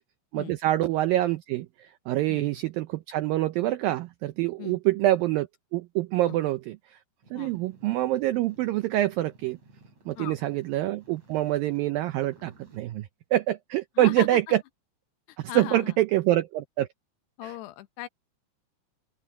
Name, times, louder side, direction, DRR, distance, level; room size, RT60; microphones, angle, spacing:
voice 1, 0.3-1.7 2.1-5.5 5.7-6.8 7.3-9.6 10.1-14.6 15.5-16.9 17.4-17.5, right 15 dB, 85° right, 2.0 m, -25 dB
sound 1, 7.2-12.8, right 2 dB, 40° right, 7.6 m, -56 dB
voice 2, 14.0-14.4 15.5-16.0 17.4-18.1, left 16 dB, 80° left, 2.9 m, -38 dB
open air
omnidirectional pair, 4.9 m